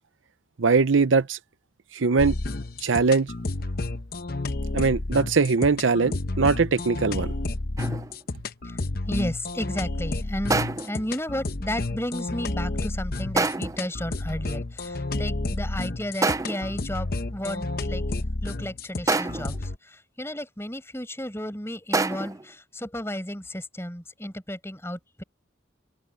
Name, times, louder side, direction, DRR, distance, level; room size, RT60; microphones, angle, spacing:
voice 1, 0.6-1.4 1.9-2.3 2.8-3.3 4.7-7.3, right 4 dB, 80° right, 0.7 m, -21 dB
sound 1, 2.2-19.8, left 2 dB, 50° left, 0.9 m, -31 dB
sound 2, 7.8-8.2 10.5-11.1 13.4-13.9 16.2-16.8 19.1-19.6 21.9-22.5, right 3 dB, 15° right, 0.4 m, -26 dB
voice 2, 8.6-25.2, left 1 dB, 15° left, 7.0 m, -33 dB
open air
head